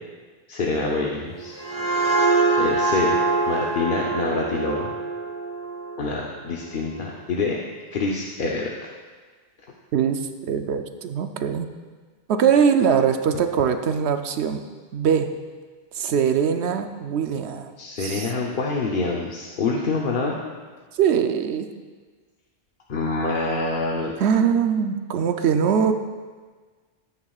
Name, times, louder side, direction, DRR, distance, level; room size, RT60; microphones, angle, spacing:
voice 1, 0.5-1.6 2.5-3.2 3.5-4.9 6.0-7.6 7.9-8.7 17.8-20.5 22.9-24.1, left 3 dB, 50° left, -2 dB, 0.9 m, -26 dB
sound 1, 1.3-6.8, right 3 dB, 20° left, 1.3 m, -24 dB
voice 2, 9.9-11.7 12.3-14.6 14.9-15.3 15.9-17.7 18.0-18.3 20.9-21.7 24.2-25.9, right 7 dB, 70° right, 7 dB, 0.9 m, -22 dB
14.0 x 9.2 x 2.4 m, 1.5 s
omnidirectional pair, 1.2 m